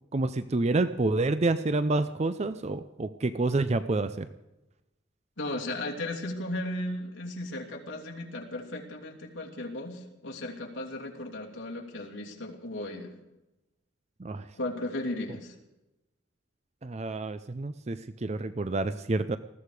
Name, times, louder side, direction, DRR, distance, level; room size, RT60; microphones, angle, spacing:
voice 1, 0.1-4.3 14.2-14.4 16.8-19.4, right 2 dB, 35° right, 12 dB, 0.5 m, -28 dB
voice 2, 5.4-13.1 14.6-15.5, left 1 dB, 70° left, -1 dB, 3.0 m, -36 dB
20.0 x 15.0 x 4.9 m, 0.98 s
head